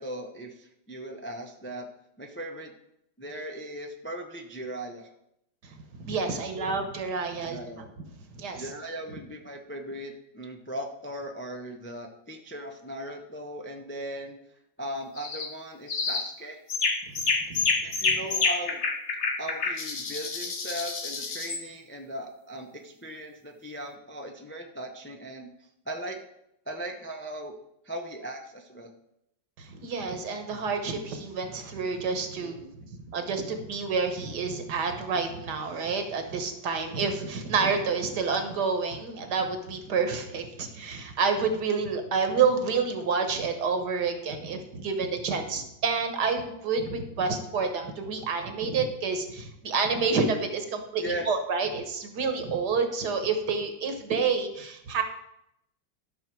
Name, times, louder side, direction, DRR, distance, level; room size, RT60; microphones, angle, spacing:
voice 1, 0.0-1.9 2.2-2.7 3.2-5.1 6.5-6.7 7.4-7.8 8.5-14.4 14.8-16.6 17.8-18.8 19.4-25.5 25.9-26.2 26.7-27.5 27.8-28.9 32.4-32.8 51.0-51.3, right 1 dB, 15° left, 2 dB, 0.5 m, -38 dB
voice 2, 6.0-7.6 8.4-8.6 17.5-17.6 29.6-32.6 33.1-55.0, right 5 dB, 60° right, 6 dB, 1.7 m, -28 dB
sound 1, 15.2-15.5 15.9-16.3 16.7-21.6, left 4 dB, 45° left, 1.2 m, -28 dB
12.5 x 6.2 x 4.6 m, 0.80 s
omnidirectional pair, 2.1 m